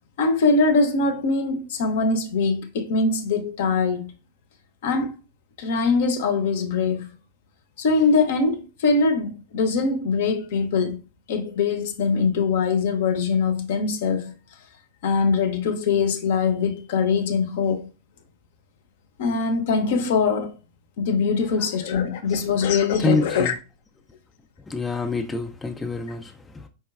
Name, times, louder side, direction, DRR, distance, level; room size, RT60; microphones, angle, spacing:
voice 1, 0.2-4.1 4.8-5.1 5.6-7.1 7.8-11.0 11.3-14.3 15.0-17.9 19.2-20.6 21.0-23.5, left 4 dB, 55° left, 0.6 m, -22 dB
voice 2, 23.0-23.5 24.7-26.7, left 3 dB, 10° left, 0.3 m, -27 dB
4.4 x 2.9 x 2.3 m
figure-of-eight pair, 90°, 0 cm